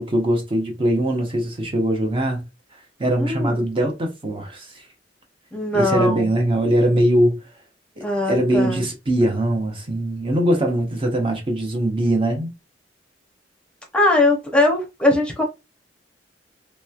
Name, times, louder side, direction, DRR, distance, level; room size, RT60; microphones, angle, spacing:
voice 1, 0.0-2.4 3.0-4.8 5.7-7.4 8.0-12.5, right 1 dB, 30° right, 0.7 m, -21 dB
voice 2, 3.2-3.7 5.5-6.3 8.0-8.9 13.9-15.4, left 2 dB, 5° left, 0.7 m, -20 dB
3.1 x 3.0 x 2.3 m
head